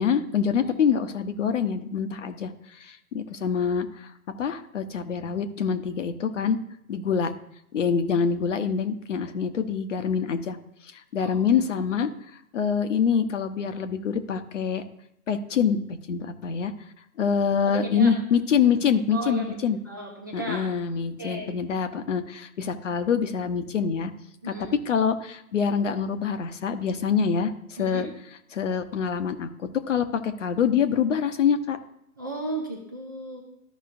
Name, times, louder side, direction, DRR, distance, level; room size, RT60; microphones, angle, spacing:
voice 1, 0.0-2.5 2.8-4.1 4.4-6.6 6.9-7.3 7.7-10.6 10.9-12.1 12.5-14.8 15.3-16.7 17.2-19.8 20.3-24.1 24.4-24.5 24.9-28.1 28.5-29.5 29.9-31.8, left 7 dB, 55° left, 9 dB, 0.9 m, -25 dB
voice 2, 11.2-11.6 17.6-18.1 19.1-20.7 21.2-21.5 24.4-24.8 27.8-28.1 32.2-33.4, right 2 dB, 15° right, -2 dB, 0.4 m, -35 dB
13.5 x 5.4 x 2.5 m, 0.77 s
figure-of-eight pair, 125°, 44 cm